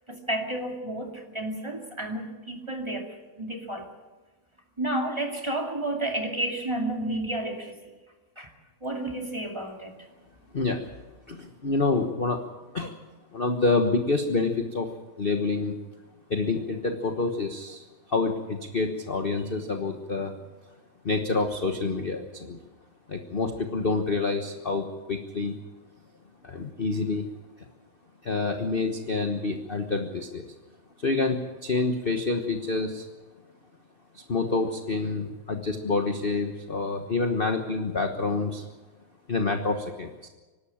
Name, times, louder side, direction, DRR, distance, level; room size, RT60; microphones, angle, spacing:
voice 1, 0.1-3.9 4.8-7.8 8.4-8.5 8.8-9.9, right 1 dB, 15° right, 2 dB, 2.3 m, -31 dB
voice 2, 11.3-12.4 12.7-13.0 13.3-14.9 15.2-15.7 16.3-20.3 21.0-22.6 23.1-25.6 26.4-27.3 28.2-30.4 31.0-33.1 34.1-38.6 39.3-40.3, left 3 dB, 30° left, 5 dB, 1.2 m, -27 dB
25.5 x 12.5 x 8.7 m, 1.2 s
omnidirectional pair, 2.3 m